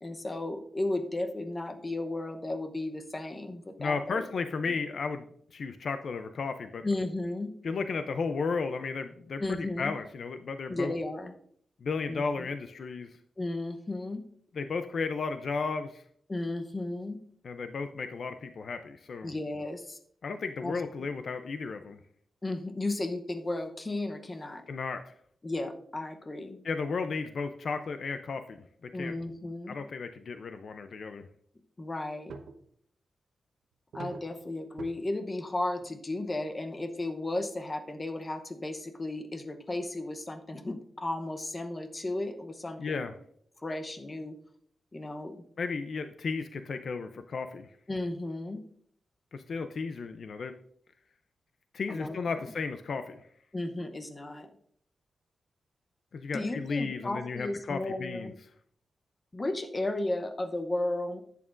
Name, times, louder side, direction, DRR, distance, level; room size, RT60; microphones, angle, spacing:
voice 1, 0.0-4.3 6.8-7.5 9.4-9.9 10.7-11.3 12.1-12.5 13.4-14.2 16.3-17.2 19.2-20.0 20.6-21.1 22.4-24.6 25.4-26.6 28.9-29.8 31.8-32.3 33.9-43.1 43.6-44.4 44.9-45.4 47.9-48.6 51.9-52.2 53.5-54.5 56.3-58.3 59.3-61.2, left 2 dB, 20° left, 6 dB, 0.8 m, -34 dB
voice 2, 3.8-5.3 5.5-6.8 7.6-10.9 11.8-13.1 14.6-16.0 17.4-19.3 20.2-22.0 24.7-25.1 26.6-28.6 28.9-29.1 29.7-31.2 42.8-43.1 45.6-47.7 49.3-50.5 51.7-53.2 56.1-58.3, left 4 dB, 55° left, 8 dB, 0.5 m, -34 dB
sound 1, 32.3-32.7 33.9-34.4 34.8-34.9 35.8-35.9 36.3-36.5 36.7-36.8 37.4-37.5, right 4 dB, 80° right, 0.9 m, -43 dB
11.0 x 8.4 x 2.5 m, 0.64 s
wide cardioid pair, 145°, 0 cm